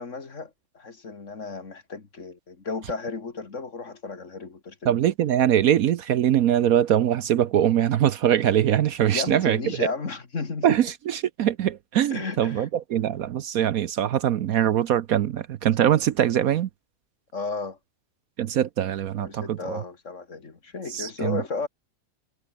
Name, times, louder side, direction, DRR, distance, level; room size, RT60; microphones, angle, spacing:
voice 1, 0.0-5.0 9.1-10.8 12.1-12.7 17.3-17.8 19.1-21.7, left 4 dB, 50° left, 2.5 m, -34 dB
voice 2, 4.8-9.6 10.6-16.7 18.4-19.8 20.9-21.4, right 10 dB, 65° right, 1.1 m, -22 dB
omnidirectional pair, 1.7 m